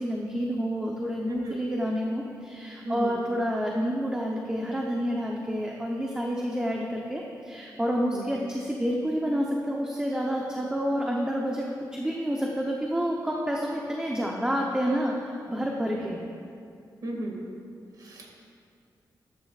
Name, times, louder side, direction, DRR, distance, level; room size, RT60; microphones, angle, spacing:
voice 1, 0.0-11.7 11.9-16.2, equal, 10° right, -1 dB, 0.8 m, -29 dB
voice 2, 1.3-1.6 2.8-3.2 8.1-8.2 17.0-17.4 18.0-18.5, right 1 dB, 60° right, 0 dB, 2.0 m, -35 dB
14.0 x 12.0 x 2.5 m, 2.5 s
wide cardioid pair, 120°, 7 cm